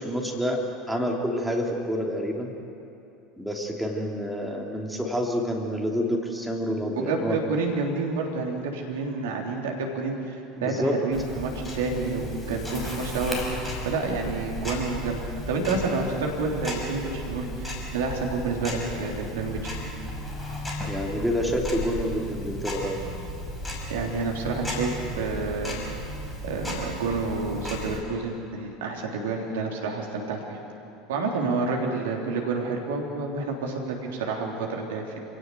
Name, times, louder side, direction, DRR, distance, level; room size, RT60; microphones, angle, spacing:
voice 1, 0.0-2.5 3.4-7.4 10.6-11.0 20.8-23.0, equal, ahead, 0 dB, 3.0 m, -28 dB
voice 2, 7.0-15.2 15.5-19.7 23.9-25.8 26.4-30.6 31.1-35.2, right 3 dB, 65° right, 1 dB, 3.2 m, -29 dB
Tick-tock, 11.1-28.0, equal, 15° left, 5.8 m, -35 dB
27.0 x 17.0 x 8.0 m, 2.8 s
figure-of-eight pair, 75°, 0 cm